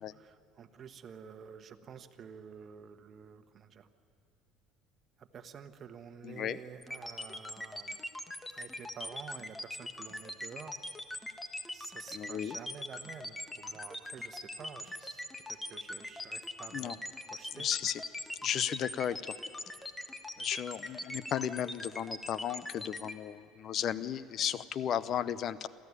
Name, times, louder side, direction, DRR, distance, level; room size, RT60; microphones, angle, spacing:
voice 1, 0.0-3.9 5.2-8.0 8.5-10.8 11.7-17.7, right 7 dB, 40° right, 9 dB, 1.3 m, -50 dB
voice 2, 6.2-6.6 12.1-12.6 16.7-17.0 17.6-18.0 18.4-19.3 20.4-25.7, left 9 dB, 50° left, 16 dB, 0.7 m, -34 dB
sound 1, 6.8-23.1, left 1 dB, 15° left, 1.4 m, -41 dB
27.0 x 14.5 x 9.8 m, 2.5 s
supercardioid pair, 105°, 0 cm